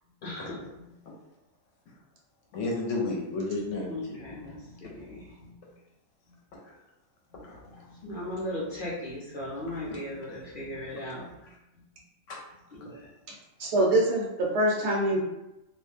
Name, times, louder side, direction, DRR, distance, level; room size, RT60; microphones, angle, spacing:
voice 1, 0.2-0.6 3.9-5.5 7.6-11.3 12.7-13.0, left 1 dB, 50° left, -5 dB, 0.7 m, -37 dB
voice 2, 2.5-4.2 6.7-6.8 7.5-7.8 9.7-10.0 12.3-12.4 12.8-12.9, left 2 dB, 70° left, -2 dB, 1.0 m, -33 dB
voice 3, 13.6-15.2, right 1 dB, 65° right, -2 dB, 0.8 m, -24 dB
2.4 x 2.1 x 3.2 m, 0.94 s
omnidirectional pair, 1.4 m